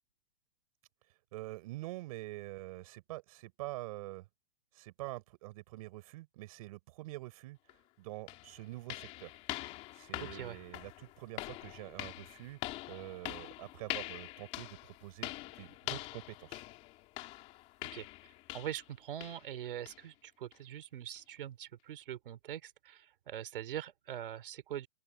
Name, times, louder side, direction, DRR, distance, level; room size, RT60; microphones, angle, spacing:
voice 1, 1.3-4.3 4.7-7.6 8.0-9.3 9.9-16.6, right 19 dB, 35° right, 6.2 m, -46 dB
sound 1, 7.7-7.8 8.3-18.9 19.2-19.5 19.9-20.0 20.5-20.6 21.2-21.3, left 18 dB, 20° left, 2.4 m, -44 dB
voice 2, 10.2-10.6 17.9-18.0 18.5-24.9, right 11 dB, 55° right, 3.1 m, -43 dB
open air
hypercardioid pair, 175°, 31 cm